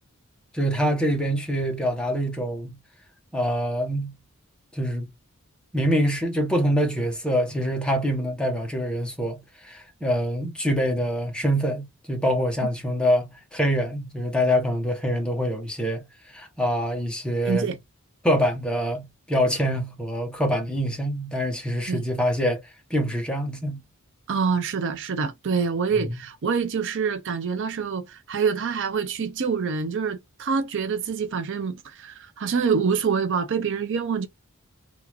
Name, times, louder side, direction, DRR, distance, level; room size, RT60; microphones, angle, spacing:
voice 1, 0.5-2.8 3.3-4.1 4.7-5.1 5.7-17.7 18.2-22.6 22.9-23.8 26.1-26.2, equal, 5° left, 1.0 m, -25 dB
voice 2, 17.4-17.8 21.9-22.0 24.3-34.3, right 5 dB, 60° right, 0.5 m, -26 dB
3.5 x 2.5 x 2.9 m
head